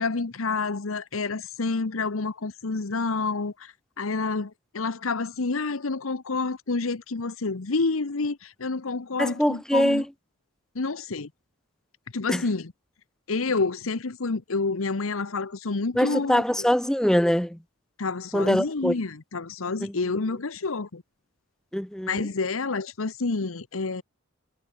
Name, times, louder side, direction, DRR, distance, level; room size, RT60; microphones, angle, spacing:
voice 1, 0.0-10.0 10.7-11.3 12.1-12.7 13.3-16.7 18.0-21.0 22.1-24.0, left 3 dB, 90° left, 1.0 m, -28 dB
voice 2, 9.2-10.0 12.3-12.4 16.0-17.6 18.3-18.9 19.8-19.9 21.7-22.2, equal, 5° left, 0.6 m, -23 dB
head